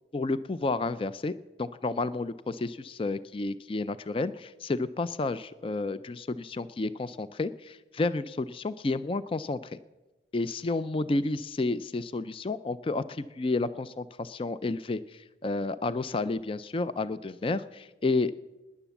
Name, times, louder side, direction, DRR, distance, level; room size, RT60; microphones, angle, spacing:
voice 1, 0.1-1.3 1.6-9.6 10.3-18.3, left 3 dB, 30° left, 15 dB, 0.4 m, -31 dB
18.5 x 10.0 x 7.1 m, 1.1 s
head